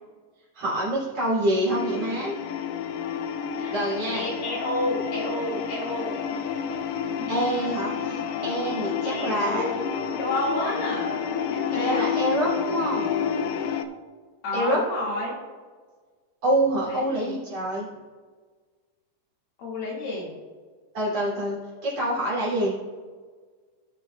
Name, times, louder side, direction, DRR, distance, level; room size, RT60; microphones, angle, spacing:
voice 1, 0.5-2.3 3.7-4.2 7.3-9.6 11.7-13.1 14.5-14.8 16.4-17.9 20.9-21.6 21.8-22.7, right 1 dB, 40° right, -8 dB, 3.3 m, -26 dB
sound 1, 1.7-13.8, left 7 dB, 90° left, 2.1 m, -29 dB
voice 2, 4.1-6.2 9.0-9.8 10.2-12.1 14.4-15.3 16.9-17.3 19.6-20.3, left 1 dB, 60° left, -5 dB, 3.5 m, -30 dB
18.0 x 6.7 x 2.3 m, 1.5 s
omnidirectional pair, 4.9 m